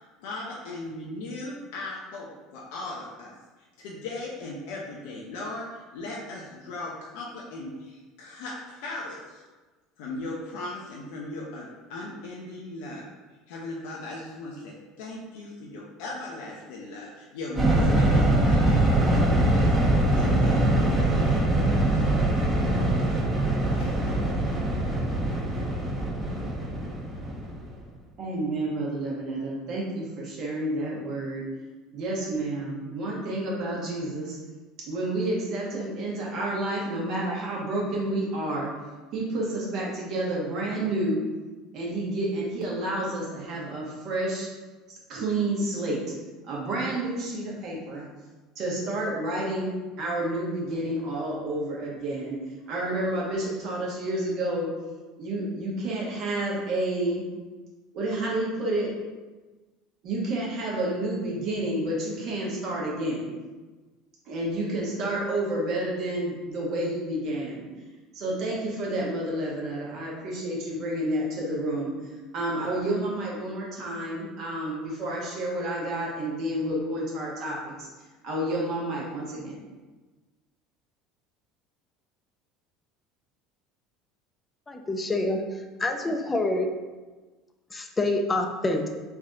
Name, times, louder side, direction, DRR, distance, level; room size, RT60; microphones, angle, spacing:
voice 1, 0.2-3.3 3.8-9.4 10.0-13.1 13.5-19.8 20.1-22.0 22.5-22.7 23.1-23.2 23.8-23.9, left 2 dB, 70° left, -3 dB, 0.5 m, -38 dB
sound 1, 17.6-27.8, right 1 dB, 30° right, 1.2 m, -23 dB
voice 2, 28.2-31.5 31.9-34.4 34.9-38.7 39.1-41.2 41.7-44.5 45.1-46.0 46.5-48.0 48.6-52.4 52.7-54.7 55.2-57.2 57.9-58.9 60.0-63.3 64.2-67.7 68.1-71.9 72.3-77.9 78.2-79.6, right 1 dB, 55° right, -4 dB, 1.2 m, -30 dB
voice 3, 84.7-85.4 85.8-86.7 87.7-88.9, left 2 dB, 20° left, 4 dB, 0.5 m, -26 dB
3.2 x 2.6 x 3.8 m, 1.3 s
hypercardioid pair, 70°, 0 cm